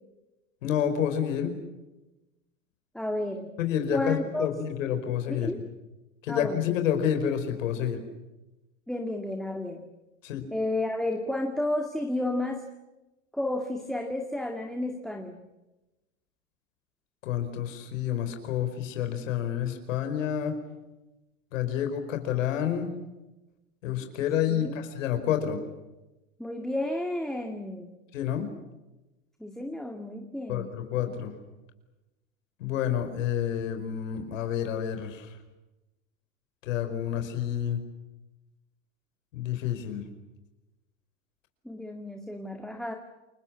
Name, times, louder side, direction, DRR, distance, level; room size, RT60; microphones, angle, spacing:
voice 1, 0.6-1.6 3.6-5.5 6.2-8.0 10.2-10.4 17.2-20.5 21.5-23.0 23.8-25.6 28.1-28.5 30.5-31.3 32.6-35.3 36.6-37.8 39.3-40.0, left 9 dB, 75° left, 7 dB, 5.0 m, -29 dB
voice 2, 2.9-3.5 3.9-4.5 5.3-5.6 6.3-6.6 8.9-9.9 10.5-12.7 13.3-15.4 24.5-24.7 26.4-27.9 29.4-30.7 41.7-42.9, left 1 dB, ahead, 3 dB, 2.1 m, -32 dB
29.0 x 20.5 x 8.7 m, 1.0 s
hypercardioid pair, 115°, 39 cm